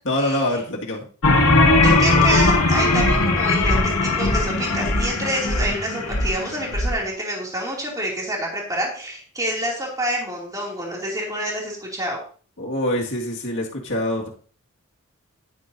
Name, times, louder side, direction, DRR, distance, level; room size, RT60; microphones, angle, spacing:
voice 1, 0.1-1.0 12.6-14.3, left 1 dB, 60° left, 0 dB, 2.0 m, -25 dB
sound 1, 1.2-6.9, left 2 dB, 75° left, 1.7 m, -19 dB
voice 2, 1.8-12.2, right 1 dB, 15° right, -2 dB, 2.6 m, -27 dB
10.5 x 9.7 x 2.7 m, 0.41 s
head